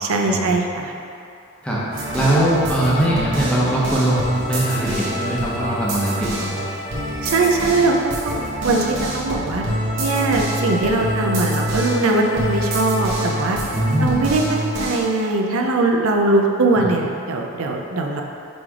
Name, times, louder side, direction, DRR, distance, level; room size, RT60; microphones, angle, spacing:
voice 1, 0.0-0.9 7.2-9.6 10.0-13.6 14.0-18.2, right 2 dB, 75° right, 2 dB, 0.6 m, -21 dB
sound 1, 1.9-15.1, equal, 55° right, 1.2 m, -26 dB
voice 2, 2.1-6.6 13.7-14.3 16.8-16.9, right 1 dB, 5° left, -8 dB, 1.0 m, -21 dB
6.1 x 3.3 x 4.9 m, 2.6 s
head